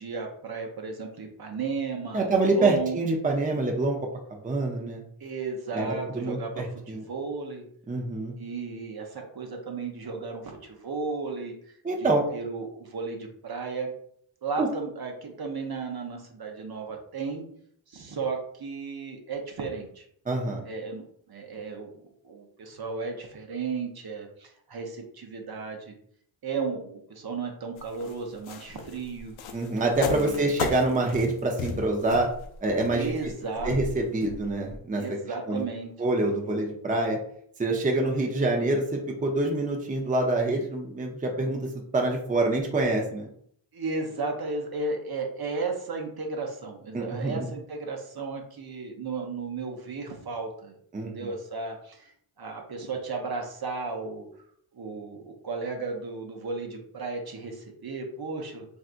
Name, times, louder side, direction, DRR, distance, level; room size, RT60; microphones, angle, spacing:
voice 1, 0.0-3.0 5.2-7.6 8.4-11.7 12.0-13.9 14.4-17.4 17.9-20.0 20.6-21.0 21.3-25.9 26.4-29.3 30.1-30.6 32.9-33.7 35.0-35.9 43.7-52.1 52.4-54.3 54.7-58.7, right 4 dB, 50° right, 2 dB, 0.8 m, -34 dB
voice 2, 2.1-4.1 4.4-5.0 5.7-7.0 7.9-8.3 11.8-12.2 14.6-14.7 20.3-20.6 29.5-32.3 32.6-33.1 33.6-35.0 35.5-35.6 36.0-37.2 37.6-43.3 46.9-47.5 50.9-51.3, right 2 dB, 15° right, 1 dB, 0.6 m, -26 dB
sound 1, 27.8-34.8, left 5 dB, 80° left, 0.6 m, -36 dB
3.3 x 2.7 x 2.5 m, 0.65 s
cardioid pair, 50°, 49 cm